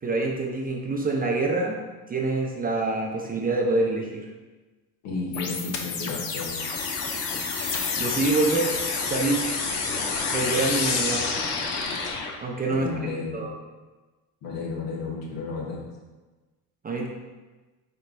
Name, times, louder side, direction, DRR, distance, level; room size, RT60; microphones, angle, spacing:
voice 1, 0.0-1.8 2.1-4.3 8.0-8.7 9.1-9.5 10.3-11.2 12.4-13.5 16.8-17.1, right 3 dB, 20° right, 0 dB, 0.4 m, -26 dB
voice 2, 5.0-6.6 12.7-13.5 14.4-15.9, left 4 dB, 75° left, -3 dB, 1.3 m, -32 dB
sound 1, 5.3-12.3, left 5 dB, 90° left, 0.6 m, -29 dB
sound 2, 6.6-12.1, left 1 dB, 25° left, 0.9 m, -37 dB
4.5 x 3.8 x 2.2 m, 1.2 s
supercardioid pair, 75°, 46 cm